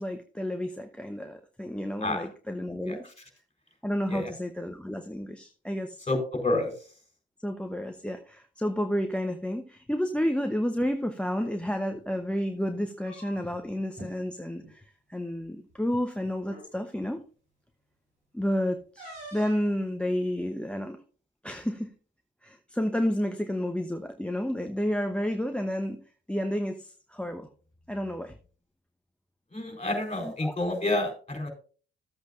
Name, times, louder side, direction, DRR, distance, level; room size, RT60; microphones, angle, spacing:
voice 1, 0.0-3.0 3.8-6.0 7.4-17.2 18.3-21.0 21.4-21.9 22.4-26.0 26.3-27.5 27.9-28.4 30.2-30.5, equal, 5° left, 7 dB, 0.9 m, -31 dB
voice 2, 6.1-6.7 29.5-31.5, left 2 dB, 20° left, 4 dB, 4.3 m, -29 dB
sound 1, 11.3-11.5 12.8-13.7 13.9-14.1 14.5-14.7 15.7-15.8 16.4-16.7 19.0-19.7, right 1 dB, 90° right, 4.2 m, -46 dB
13.5 x 8.0 x 2.6 m, 0.39 s
hypercardioid pair, 50°, 30 cm